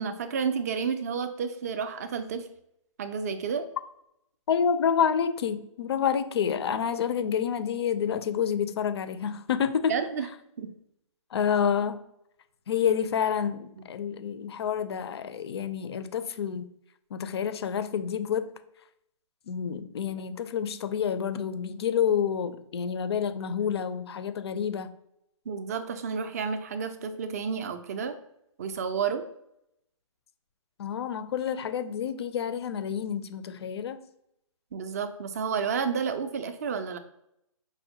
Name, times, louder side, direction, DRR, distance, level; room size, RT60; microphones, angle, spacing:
voice 1, 0.0-2.5 3.0-3.7 9.9-10.3 10.6-10.7 25.5-28.1 28.6-29.2 34.7-37.0, right 6 dB, 30° right, 0.3 m, -31 dB
voice 2, 4.5-9.9 11.3-12.0 12.7-16.7 17.1-18.5 19.5-24.9 30.8-34.0, left 7 dB, 50° left, 0.4 m, -28 dB
5.2 x 2.1 x 2.7 m
hypercardioid pair, 145°, 17 cm